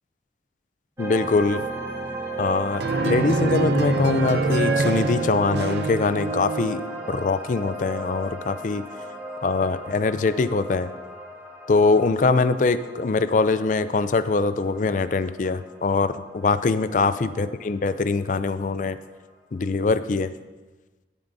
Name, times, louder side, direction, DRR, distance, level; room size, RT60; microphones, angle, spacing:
voice 1, 1.0-1.6 2.4-6.8 7.1-8.9 9.4-10.9 11.7-19.0 19.5-20.3, left 3 dB, 45° left, 13 dB, 0.4 m, -23 dB
sound 1, 1.0-18.0, right 2 dB, 15° right, 1.9 m, -35 dB
sound 2, 2.8-7.0, right 3 dB, 70° right, 0.7 m, -25 dB
18.5 x 7.3 x 2.6 m, 1.3 s
head